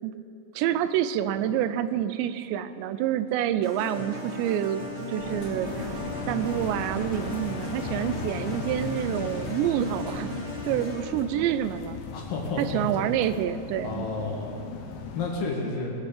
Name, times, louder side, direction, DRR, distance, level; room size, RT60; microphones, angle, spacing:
voice 1, 0.6-4.8 5.1-5.9 6.3-10.3 10.6-12.0 12.6-14.1, right 11 dB, 85° right, 12 dB, 2.8 m, -27 dB
sound 1, 3.6-11.2, left 1 dB, 30° right, 1.4 m, -37 dB
Engine, 5.2-11.0, left 1 dB, 30° left, 3.1 m, -41 dB
sound 2, 5.6-15.4, left 6 dB, 80° left, 3.2 m, -38 dB
voice 2, 12.1-13.0 13.8-14.6 15.2-15.9, left 3 dB, 60° left, -1 dB, 2.7 m, -31 dB
20.5 x 8.2 x 6.7 m, 2.7 s
omnidirectional pair, 5.1 m